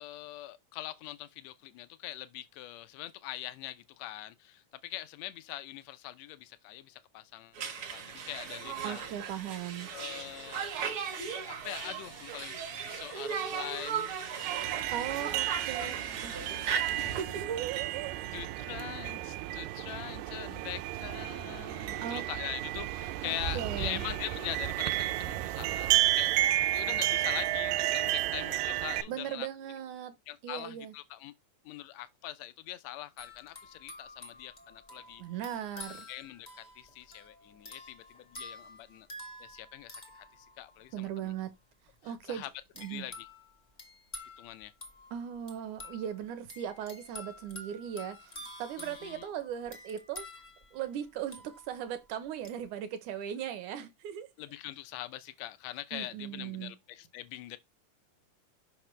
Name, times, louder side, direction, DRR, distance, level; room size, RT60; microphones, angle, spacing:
voice 1, 0.0-9.1 9.9-10.7 11.5-12.6 12.8-14.1 14.7-15.4 15.7-17.5 18.3-25.9 26.1-26.3 26.7-29.5 30.3-31.3 31.6-35.2 36.1-39.1 39.4-41.3 42.0-42.5 42.9-43.1 44.4-44.7 48.8-49.3 54.4-57.6, left 14 dB, 75° left, 1.6 m, -43 dB
Conversation, 7.6-17.2, right 7 dB, 55° right, 1.6 m, -37 dB
voice 2, 8.8-9.9 14.9-15.9 16.2-16.3 17.0-18.2 22.0-22.2 23.3-24.1 29.1-30.1 30.4-30.9 35.2-36.1 40.9-41.5 42.0-42.5 42.8-43.1 45.1-50.3 50.7-54.3 55.9-56.7, right 10 dB, 70° right, 2.4 m, -38 dB
sound 1, 14.4-29.0, right 15 dB, 85° right, 2.3 m, -32 dB
sound 2, 33.2-41.0 42.7-51.9 52.4-52.7, left 2 dB, 35° left, 0.6 m, -49 dB
5.9 x 5.8 x 3.3 m
omnidirectional pair, 3.8 m